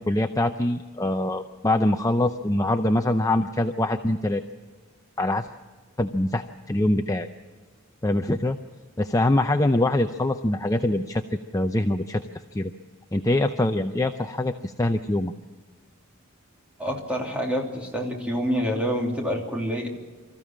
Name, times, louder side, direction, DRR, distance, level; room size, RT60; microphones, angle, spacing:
voice 1, 0.0-4.4 5.2-5.5 6.0-7.3 8.0-8.6 9.0-12.7 13.1-15.3, left 1 dB, 15° left, 7 dB, 0.5 m, -24 dB
voice 2, 16.8-19.9, equal, 5° right, 0 dB, 2.9 m, -27 dB
25.0 x 14.5 x 7.4 m, 1.5 s
head